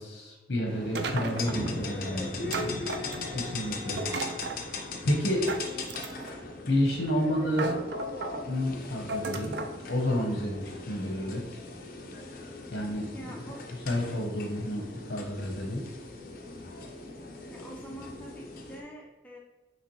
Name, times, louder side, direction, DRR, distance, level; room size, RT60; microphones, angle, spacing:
voice 1, 0.0-2.3 3.3-4.0 5.0-5.4 6.7-7.7 8.4-9.6 9.9-11.6 12.7-13.3 13.9-15.8, left 1 dB, 65° left, 0 dB, 0.9 m, -30 dB
sound 1, 0.6-5.8, equal, 45° right, 1.0 m, -41 dB
sound 2, 0.9-18.8, left 3 dB, 50° left, 0.6 m, -40 dB
sound 3, 0.9-1.7 2.5-3.5 4.0-4.6 5.5-6.4 7.1-7.2 7.5-8.4 9.1-9.8, right 3 dB, 65° right, 0.4 m, -34 dB
voice 2, 13.1-13.7 17.5-19.4, right 1 dB, 10° left, -2 dB, 0.7 m, -45 dB
5.7 x 3.0 x 3.1 m, 1.2 s
head